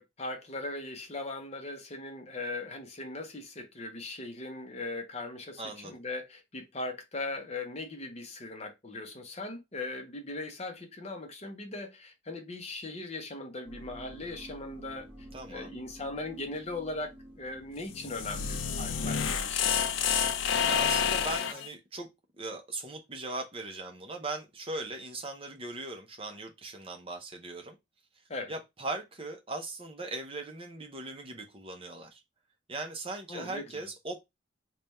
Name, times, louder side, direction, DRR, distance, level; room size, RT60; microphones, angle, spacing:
voice 1, 0.0-15.1 15.5-17.1 17.4-20.1 28.3-28.5 33.3-33.6, left 2 dB, 30° left, 0.6 m, -39 dB
voice 2, 5.6-6.0 15.3-15.7 20.7-22.1 22.4-27.8 28.5-32.2 32.7-34.2, right 2 dB, 25° right, 0.6 m, -39 dB
sound 1, 13.6-18.6, equal, 5° right, 1.6 m, -50 dB
sound 2, 17.8-21.7, left 7 dB, 75° left, 0.5 m, -29 dB
3.3 x 2.2 x 4.0 m
head